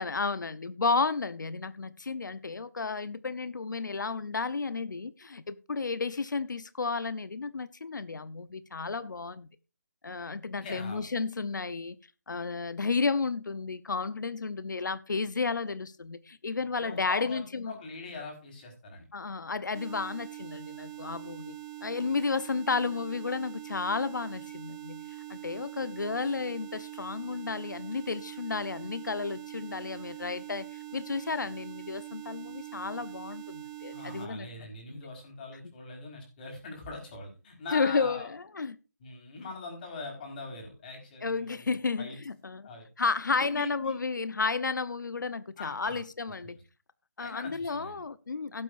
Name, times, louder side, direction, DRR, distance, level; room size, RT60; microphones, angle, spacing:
voice 1, 0.0-9.5 10.0-12.0 12.3-17.7 19.1-25.0 25.3-30.7 30.9-34.5 34.9-35.0 37.7-38.8 41.2-42.7 43.0-46.6 47.2-48.6, left 4 dB, 85° left, 0.9 m, -32 dB
voice 2, 10.6-11.0 16.8-19.1 33.9-38.3 39.0-42.2 42.6-42.9 43.3-43.9 45.6-46.0 46.4-46.5 47.2-48.0, left 3 dB, 30° left, 4.7 m, -42 dB
sound 1, 19.7-34.3, right 15 dB, 15° right, 0.6 m, -43 dB
17.5 x 8.1 x 2.6 m
hypercardioid pair, 165°, 10 cm